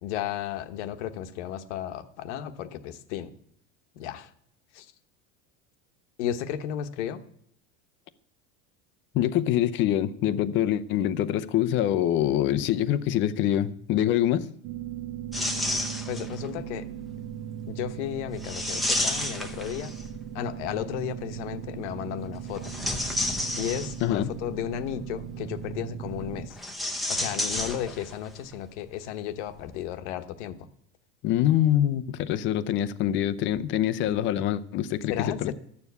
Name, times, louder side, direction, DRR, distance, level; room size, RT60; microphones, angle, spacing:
voice 1, 0.0-3.3 4.0-4.3 4.7-4.8 6.2-7.2 16.1-16.8 17.7-19.9 20.3-22.7 23.5-26.6 27.1-30.7 35.1-35.5, left 10 dB, 75° left, 1.2 m, -34 dB
voice 2, 9.1-14.5 24.0-24.3 31.2-35.5, left 11 dB, 35° left, 0.6 m, -25 dB
sound 1, 14.6-26.5, right 9 dB, 60° right, 1.1 m, -38 dB
sound 2, 15.3-16.4 18.4-20.2 22.5-24.2 26.5-28.3 28.5-28.6 29.6-29.7, left 1 dB, ahead, 0.8 m, -30 dB
12.5 x 7.2 x 8.2 m
cardioid pair, 165°, 35 cm